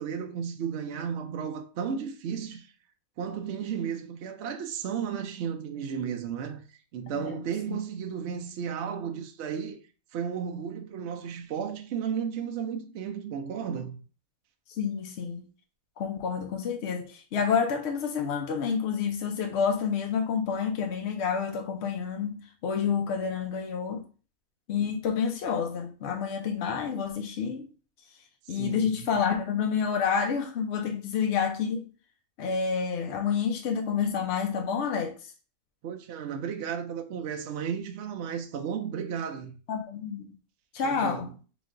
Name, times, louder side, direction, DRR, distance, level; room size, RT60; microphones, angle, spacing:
voice 1, 0.0-2.7 3.2-6.6 6.9-9.8 10.1-14.0 28.4-29.1 35.8-39.6 40.8-41.3, right 7 dB, 65° right, 0.7 m, -34 dB
voice 2, 14.8-15.4 16.0-24.0 24.7-27.7 28.5-31.9 32.4-35.1 39.7-40.3 40.7-41.3, left 6 dB, 65° left, 0.7 m, -29 dB
3.2 x 3.0 x 3.7 m
omnidirectional pair, 1.5 m